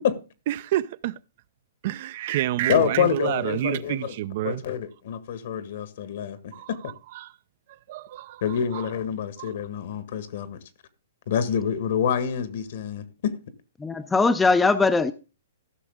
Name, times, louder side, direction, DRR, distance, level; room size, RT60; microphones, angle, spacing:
voice 1, 0.5-1.2 1.8-4.6 6.5-7.3 7.7-8.9 9.4-9.5, right 14 dB, 50° right, 0.5 m, -29 dB
voice 2, 2.7-4.1 4.4-6.9 8.4-10.6 11.3-13.3, left 8 dB, 60° left, 1.6 m, -27 dB
voice 3, 13.8-15.1, left 4 dB, 10° left, 0.5 m, -20 dB
15.0 x 6.1 x 3.6 m
hypercardioid pair, 145°, 0 cm